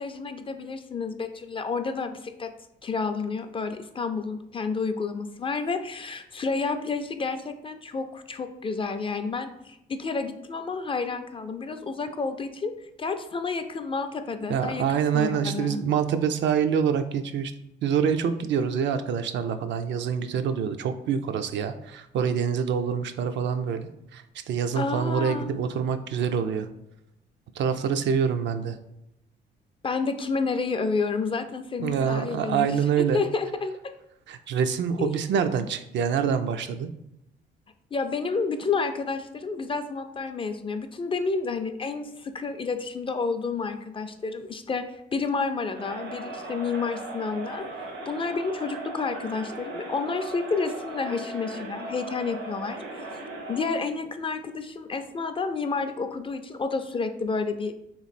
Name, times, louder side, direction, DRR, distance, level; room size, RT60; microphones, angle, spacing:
voice 1, 0.0-2.5 2.8-12.7 13.0-15.8 24.8-25.6 29.8-33.9 35.0-35.1 37.9-53.1 53.5-57.7, left 4 dB, 25° left, 8 dB, 0.4 m, -30 dB
voice 2, 14.5-17.5 17.8-26.7 27.6-28.8 31.8-33.2 34.3-36.9, right 7 dB, 65° right, 9 dB, 0.4 m, -26 dB
Crowd, 45.7-53.8, right 2 dB, 85° right, 1.3 m, -38 dB
3.2 x 3.1 x 4.1 m, 0.82 s
cardioid pair, 90°, 20 cm